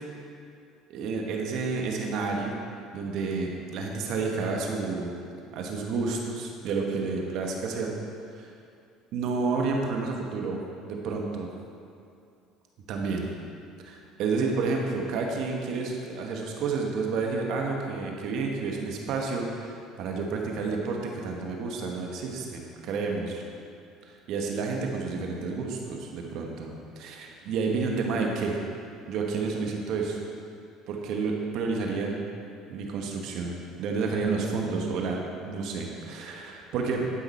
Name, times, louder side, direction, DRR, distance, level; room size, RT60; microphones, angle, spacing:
voice 1, 0.9-2.6 2.9-5.2 5.5-7.9 8.4-8.5 9.1-11.5 12.9-13.2 13.8-23.4 24.3-28.6 29.1-30.2 30.9-32.2 32.7-37.1, right 4 dB, 65° right, 1 dB, 1.3 m, -30 dB
11.5 x 5.8 x 4.4 m, 2.5 s
hypercardioid pair, 75°, 0 cm